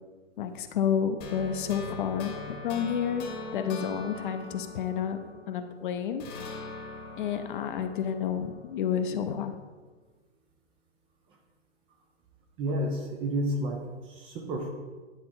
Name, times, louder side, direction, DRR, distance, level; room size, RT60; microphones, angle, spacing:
voice 1, 0.4-3.3 3.5-5.2 5.5-6.2 7.2-9.5, left 8 dB, 45° left, 7 dB, 0.7 m, -30 dB
sound 1, 1.2-5.7 6.2-9.3, left 3 dB, 30° left, 1.1 m, -42 dB
voice 2, 12.6-14.7, right 1 dB, 15° right, 2 dB, 0.5 m, -31 dB
9.9 x 3.4 x 4.3 m, 1.3 s
hypercardioid pair, 125°, 35 cm